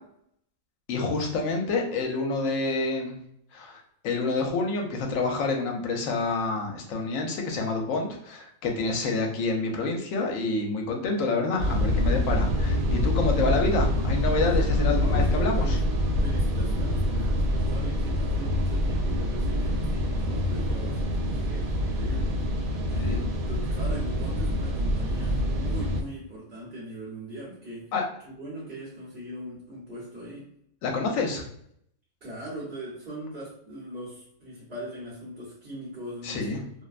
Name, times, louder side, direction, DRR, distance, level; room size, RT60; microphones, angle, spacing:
voice 1, 0.9-3.2 3.5-15.8 23.0-23.2 27.9-28.0 30.8-31.4 36.2-36.6, left 3 dB, 75° left, 2 dB, 0.9 m, -28 dB
sound 1, 11.6-26.0, left 1 dB, 90° right, 1.0 m, -26 dB
voice 2, 14.5-15.9 16.2-22.4 22.9-27.9 28.2-30.5 32.2-36.6, right 1 dB, 45° right, -9 dB, 1.0 m, -40 dB
2.6 x 2.1 x 2.3 m, 0.68 s
omnidirectional pair, 1.5 m